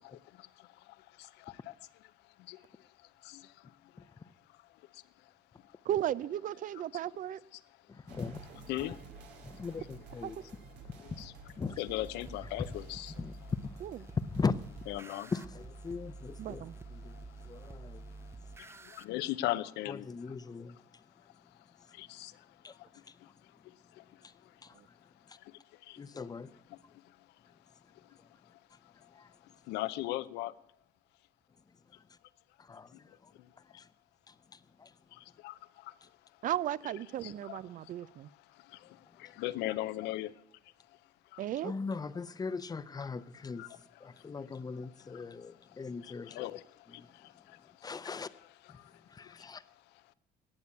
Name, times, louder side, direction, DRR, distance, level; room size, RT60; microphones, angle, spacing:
voice 1, 0.3-1.7 2.4-2.9 3.2-4.0 4.9-5.0 7.5-7.6 8.7-9.0 11.0-11.3 11.8-13.2 14.9-15.3 17.0-17.8 18.2-18.3 18.6-20.1 21.9-22.5 22.8-22.9 23.2-23.3 23.9-24.0 24.4-24.5 25.4-26.0 29.0-29.1 29.7-30.5 33.4-33.5 33.7-33.8 35.1-35.9 37.2-38.2 38.5-40.3 41.3-41.4 43.6-43.7 44.1-44.3 46.3-46.6 46.9-47.6 48.8-48.9 49.2-49.5, left 16 dB, 85° left, 0.7 m, -40 dB
voice 2, 4.0-4.3 7.9-8.7 9.4-10.4 10.8-11.8 13.2-13.7 14.2-14.5 15.3-18.1 19.9-21.0 21.9-22.0 22.6-23.3 24.2-24.3 24.6-25.0 25.3-25.4 26.0-26.6 28.3-28.4 28.7-28.8 29.1-29.3 31.9-32.2 32.6-33.3 33.6-33.9 34.3-35.0 36.0-36.1 41.6-46.5 46.9-47.1 47.8-48.3 48.7-49.6, left 4 dB, 20° left, 0.7 m, -40 dB
voice 3, 5.9-7.4 10.2-10.3 13.8-13.9 16.4-16.7 36.4-38.3 41.4-41.7, right 11 dB, 50° right, 0.5 m, -35 dB
sound 1, 8.1-14.9, right 4 dB, 90° right, 2.3 m, -53 dB
sound 2, 11.9-19.0, right 3 dB, 15° right, 0.6 m, -48 dB
18.0 x 7.1 x 8.2 m
cardioid pair, 110°, 17 cm